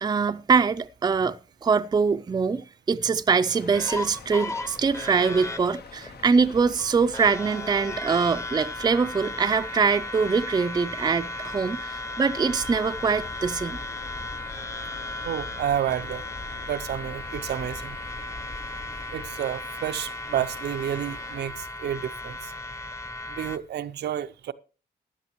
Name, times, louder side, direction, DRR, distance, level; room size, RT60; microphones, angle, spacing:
voice 1, 0.0-13.8, right 5 dB, 25° right, 0.4 m, -23 dB
Waves surf, 3.4-21.5, left 6 dB, 75° left, 1.1 m, -47 dB
sound 1, 3.7-23.6, left 2 dB, 15° left, 0.8 m, -36 dB
sound 2, 12.5-19.3, left 2 dB, 55° left, 1.5 m, -44 dB
voice 2, 15.2-16.2 16.7-18.0 19.1-22.5 23.3-24.5, right 10 dB, 85° right, 0.6 m, -30 dB
15.0 x 10.5 x 3.0 m
cardioid pair, 105°, 17 cm